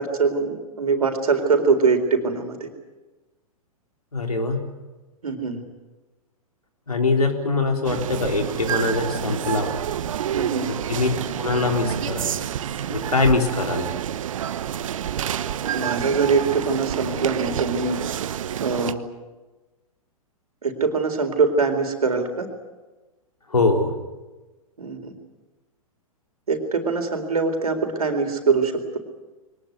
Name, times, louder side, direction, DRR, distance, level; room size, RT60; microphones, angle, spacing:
voice 1, 0.0-2.7 5.2-5.6 10.3-10.7 15.7-18.0 18.6-19.0 20.6-22.5 24.8-25.1 26.5-29.0, right 4 dB, 80° right, 6 dB, 4.1 m, -23 dB
voice 2, 4.1-4.6 6.9-9.7 10.9-11.1 11.4-12.3 12.9-13.9 23.5-23.9, left 3 dB, 85° left, 3 dB, 3.9 m, -22 dB
sound 1, 7.8-18.9, right 10 dB, 65° right, 1.1 m, -28 dB
22.5 x 19.5 x 9.5 m, 1.2 s
figure-of-eight pair, 110°, 19 cm